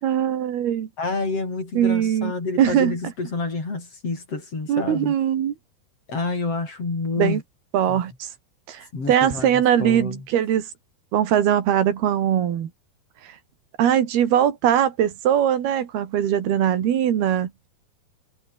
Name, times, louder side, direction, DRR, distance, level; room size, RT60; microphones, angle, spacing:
voice 1, 0.0-0.9 1.8-2.3 2.6-3.0 4.7-5.5 7.2-7.4 7.7-8.3 8.7-10.7 11.1-12.7 13.2-13.4 13.8-17.5, right 10 dB, 80° right, 4.1 m, -21 dB
voice 2, 1.0-5.1 6.1-7.4 7.9-8.0 8.9-10.2, left 3 dB, 40° left, 6.5 m, -28 dB
omnidirectional pair, 4.4 m